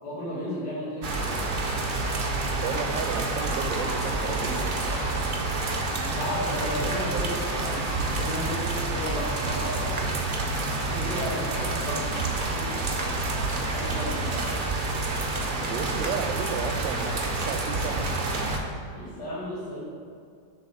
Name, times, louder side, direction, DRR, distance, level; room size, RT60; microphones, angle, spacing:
voice 1, 0.0-1.3 6.0-10.1 10.7-12.2 12.5-12.8 13.6-14.5 18.9-19.8, left 1 dB, 65° left, -10 dB, 2.1 m, -34 dB
sound 1, 1.0-18.6, right 2 dB, 65° right, 0.5 m, -28 dB
voice 2, 2.6-5.3 6.8-7.2 15.7-18.0, right 6 dB, 85° right, 7 dB, 1.3 m, -34 dB
7.1 x 3.5 x 6.3 m, 2.2 s
omnidirectional pair, 2.0 m